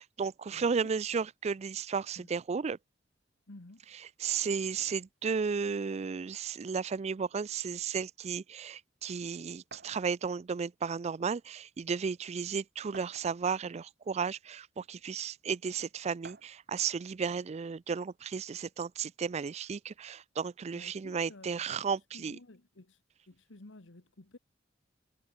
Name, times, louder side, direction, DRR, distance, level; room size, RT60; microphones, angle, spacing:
voice 1, 0.0-2.8 4.2-22.4, right 6 dB, 35° right, 0.4 m, -34 dB
voice 2, 0.5-0.9 2.2-2.3 3.5-3.8 20.7-21.8 22.1-23.0 23.3-24.4, left 2 dB, 90° left, 1.5 m, -53 dB
sound 1, 9.7-10.0 11.1-11.2 11.6-11.7 12.9-13.6 14.4-14.5 16.2-16.6, right 4 dB, 55° right, 3.1 m, -51 dB
head